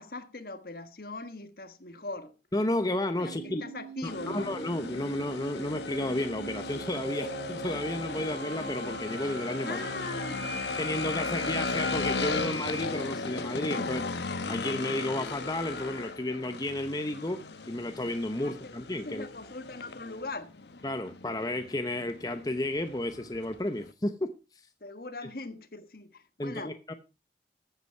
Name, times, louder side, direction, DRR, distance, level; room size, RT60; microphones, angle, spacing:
voice 1, 0.0-2.3 3.2-4.5 9.6-10.6 11.2-11.3 18.4-18.7 19.0-20.5 24.8-26.7, left 2 dB, 55° left, 1.4 m, -40 dB
voice 2, 2.5-3.6 4.0-9.8 10.8-14.0 14.5-19.2 20.8-24.3 26.4-26.9, left 1 dB, 20° left, 0.9 m, -32 dB
sound 1, 3.2-12.8, right 2 dB, 35° right, 3.3 m, -41 dB
sound 2, 4.0-23.9, left 3 dB, 75° left, 1.2 m, -37 dB
14.5 x 8.2 x 4.5 m
head